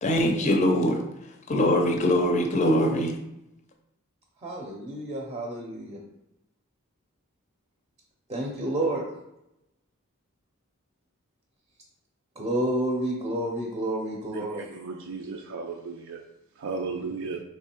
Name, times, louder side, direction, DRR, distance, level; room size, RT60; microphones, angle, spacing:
voice 1, 0.0-1.0 1.5-3.2, left 1 dB, 35° left, 3 dB, 0.5 m, -22 dB
voice 2, 4.4-6.0 8.3-9.0 12.4-14.7, right 1 dB, 25° right, -1 dB, 0.6 m, -29 dB
voice 3, 14.4-16.2 16.6-17.4, right 4 dB, 65° right, 2 dB, 0.4 m, -35 dB
3.6 x 3.1 x 4.4 m, 0.88 s
head